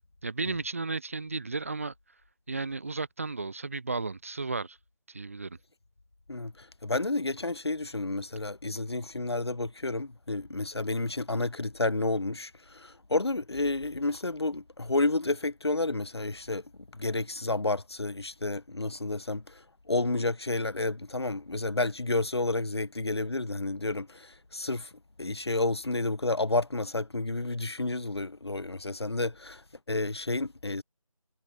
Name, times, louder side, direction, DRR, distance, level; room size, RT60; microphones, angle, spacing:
voice 1, 0.0-1.9 2.5-4.8 5.1-5.6, right 3 dB, 25° right, 1.6 m, -34 dB
voice 2, 6.3-24.9 25.2-30.8, left 2 dB, 50° left, 2.8 m, -31 dB
figure-of-eight pair, 170°, 17 cm